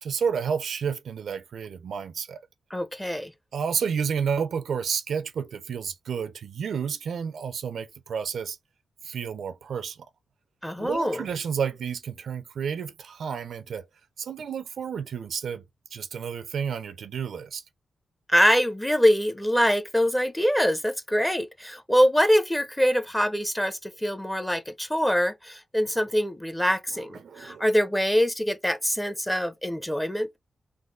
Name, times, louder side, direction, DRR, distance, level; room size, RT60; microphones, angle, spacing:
voice 1, 0.0-2.4 3.5-8.6 9.0-10.0 10.8-13.9 14.2-15.6 15.9-17.6 27.2-27.7, right 7 dB, 80° right, 0.5 m, -30 dB
voice 2, 2.7-3.3 10.6-11.3 18.3-30.4, equal, 10° left, 0.8 m, -24 dB
3.9 x 2.5 x 3.5 m
cardioid pair, 75°, 0 cm